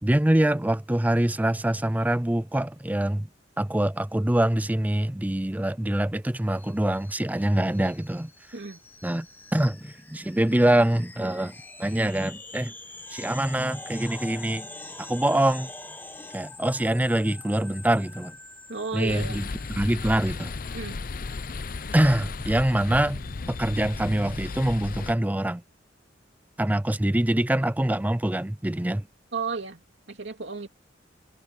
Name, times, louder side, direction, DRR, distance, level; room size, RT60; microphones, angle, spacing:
voice 1, 0.0-3.3 3.6-8.3 9.0-9.3 9.5-12.7 13.1-14.7 15.0-15.7 16.3-18.3 18.9-19.5 19.8-20.5 21.9-23.2 23.5-25.6 26.6-29.0, right 1 dB, 10° right, 0.5 m, -24 dB
sound 1, 6.5-22.7, left 2 dB, 10° left, 1.3 m, -45 dB
voice 2, 18.7-19.5 20.7-21.0 29.3-29.8 30.1-30.7, right 4 dB, 75° right, 2.5 m, -33 dB
sound 2, 19.1-25.1, left 3 dB, 50° left, 0.6 m, -35 dB
head